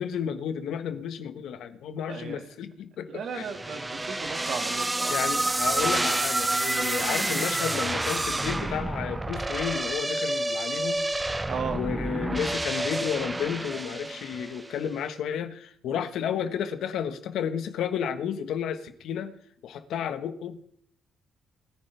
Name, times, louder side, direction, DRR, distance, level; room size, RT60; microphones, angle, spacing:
voice 1, 0.0-3.5 5.1-11.0 11.7-19.3 19.6-20.6, left 8 dB, 80° left, 9 dB, 1.3 m, -32 dB
voice 2, 2.1-2.5 3.1-5.2 11.5-11.8, right 6 dB, 65° right, 6 dB, 2.0 m, -35 dB
sound 1, 3.3-7.0, equal, 15° left, 3.1 m, -50 dB
sound 2, 3.4-14.7, right 2 dB, 15° right, 0.6 m, -29 dB
21.5 x 10.0 x 3.4 m, 0.68 s
cardioid pair, 90°, 0 cm